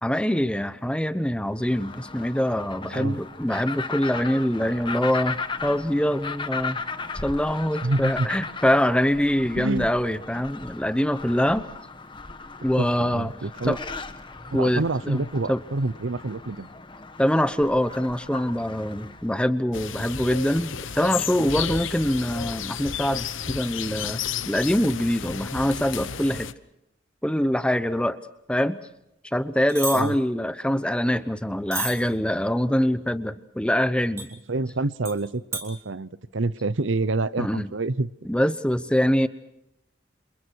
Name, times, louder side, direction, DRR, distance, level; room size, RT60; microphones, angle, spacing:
voice 1, 0.0-6.8 7.2-11.7 12.6-13.3 13.6-13.8 14.5-15.6 17.2-26.5 27.2-28.2 28.5-28.8 29.2-34.3 37.4-37.7 38.2-39.3, equal, 5° left, 0.9 m, -24 dB
sound 1, 1.6-19.3, left 4 dB, 25° left, 1.2 m, -37 dB
voice 2, 7.8-8.3 9.6-9.9 12.8-13.8 14.5-16.7 29.9-30.1 34.5-38.1, right 2 dB, 75° right, 0.9 m, -27 dB
sound 2, 19.7-26.5, left 7 dB, 80° left, 1.0 m, -32 dB
sound 3, 29.7-30.0 31.7-32.0 34.2-34.3 35.1-35.2 35.5-35.7, right 3 dB, 15° right, 2.9 m, -30 dB
29.0 x 28.0 x 4.7 m
head